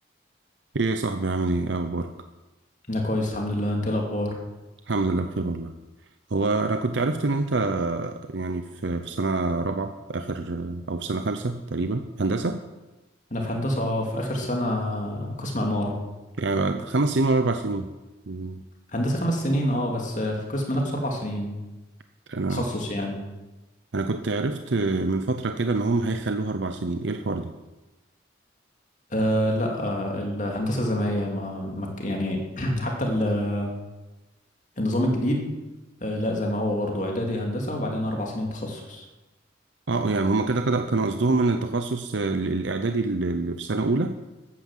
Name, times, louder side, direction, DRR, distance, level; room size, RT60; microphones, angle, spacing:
voice 1, 0.7-2.1 4.9-5.7 6.3-12.6 16.4-17.9 18.3-18.6 22.3-22.6 23.9-27.5 39.9-44.1, right 3 dB, 70° right, 8 dB, 0.7 m, -26 dB
voice 2, 2.9-4.4 13.3-16.0 18.9-21.6 22.5-23.2 29.1-33.7 34.8-35.5 36.0-39.0, left 1 dB, 40° left, 0 dB, 2.6 m, -27 dB
13.5 x 9.8 x 7.3 m, 1.1 s
head